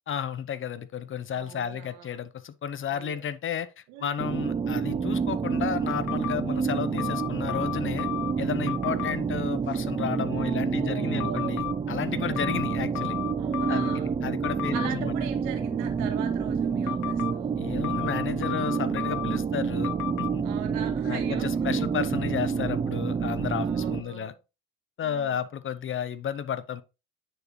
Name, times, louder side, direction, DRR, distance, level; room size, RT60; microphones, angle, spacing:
voice 1, 0.1-8.1 8.4-13.2 13.7-15.1 17.6-19.9 20.2-20.4 21.0-24.3 25.0-26.8, left 8 dB, 40° left, 0.7 m, -32 dB
voice 2, 1.3-2.2 2.9-3.3 3.9-4.2 8.5-8.8 10.2-11.6 12.0-12.5 13.4-14.2 14.7-17.6 20.4-22.0 23.6-24.4 25.0-25.5, right 9 dB, 85° right, 1.8 m, -41 dB
sound 1, 4.2-24.0, right 6 dB, 20° right, 0.4 m, -28 dB
sound 2, 5.9-6.4 7.0-8.3 8.7-9.1 11.2-11.7 12.4-14.0 14.4-14.9 16.9-17.3 17.8-19.4 19.8-20.3, left 19 dB, 80° left, 0.6 m, -33 dB
9.6 x 4.4 x 3.1 m
supercardioid pair, 85°, 31 cm